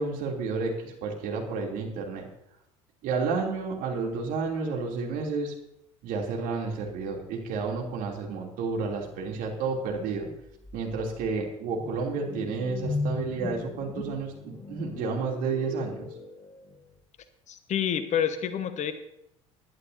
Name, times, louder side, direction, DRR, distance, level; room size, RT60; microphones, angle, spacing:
voice 1, 0.0-2.3 3.0-5.5 6.0-10.3 10.7-16.1, right 4 dB, 55° right, 0 dB, 3.0 m, -31 dB
sound 1, 10.6-16.8, left 3 dB, 25° left, 2.6 m, -37 dB
voice 2, 17.5-18.9, left 9 dB, 45° left, 10 dB, 1.3 m, -28 dB
21.0 x 11.0 x 2.8 m, 0.78 s
figure-of-eight pair, 65°, 17 cm